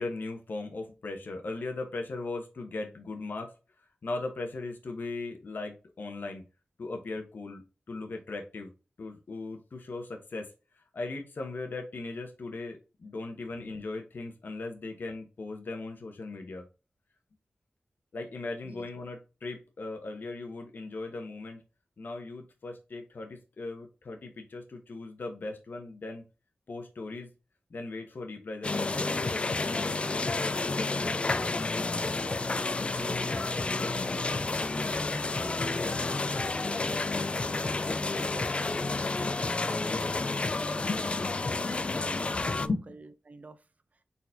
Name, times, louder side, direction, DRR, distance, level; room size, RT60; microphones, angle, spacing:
voice 1, 0.0-3.5 4.0-6.4 6.8-7.6 7.9-8.7 9.0-10.5 10.8-16.6 18.1-21.6 22.0-26.2 26.7-27.3 27.7-31.2 40.7-41.3 41.6-41.8 42.4-42.8, left 3 dB, 70° left, 1.0 m, -38 dB
sound 1, 28.6-42.7, left 3 dB, 35° left, 0.3 m, -30 dB
voice 2, 33.0-34.8 35.4-41.3 41.6-44.0, right 3 dB, 50° right, 0.6 m, -49 dB
4.3 x 4.0 x 2.7 m
wide cardioid pair, 80°, 3 cm